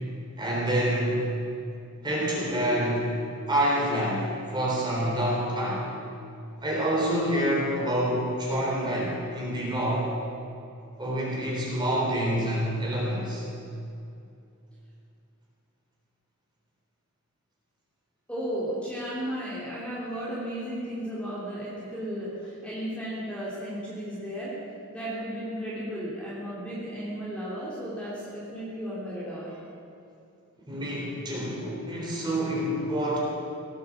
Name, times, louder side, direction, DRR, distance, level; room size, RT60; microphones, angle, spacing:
voice 1, 0.4-1.3 2.0-3.1 3.5-5.9 6.6-10.1 11.0-13.4 30.7-33.2, equal, 20° right, -4 dB, 3.6 m, -27 dB
voice 2, 18.3-24.6 24.9-29.6, equal, 5° left, -7 dB, 3.1 m, -34 dB
17.5 x 9.3 x 7.4 m, 2.6 s
head